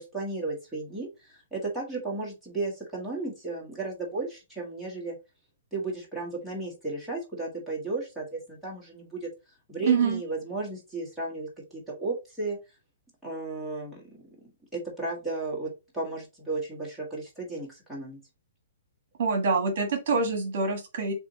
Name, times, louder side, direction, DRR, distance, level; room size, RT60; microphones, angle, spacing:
voice 1, 0.0-5.1 5.7-9.3 9.7-12.6 13.2-14.2 14.7-18.2, right 3 dB, ahead, -5 dB, 1.6 m, -34 dB
voice 2, 9.8-10.2 19.2-21.1, right 4 dB, 50° right, 4 dB, 1.4 m, -25 dB
7.3 x 2.6 x 2.8 m, 0.26 s
hypercardioid pair, 170°, 0 cm